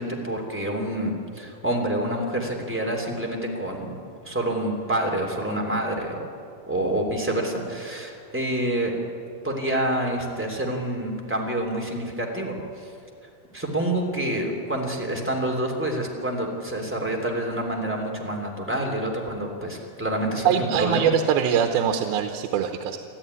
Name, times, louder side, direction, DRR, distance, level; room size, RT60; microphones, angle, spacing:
voice 1, 0.0-3.9 4.2-6.2 6.7-8.9 9.4-12.9 13.5-21.1, right 1 dB, 5° right, 0 dB, 2.5 m, -27 dB
voice 2, 20.5-23.0, right 8 dB, 90° right, 6 dB, 2.8 m, -23 dB
24.0 x 14.0 x 9.8 m, 2.5 s
omnidirectional pair, 4.2 m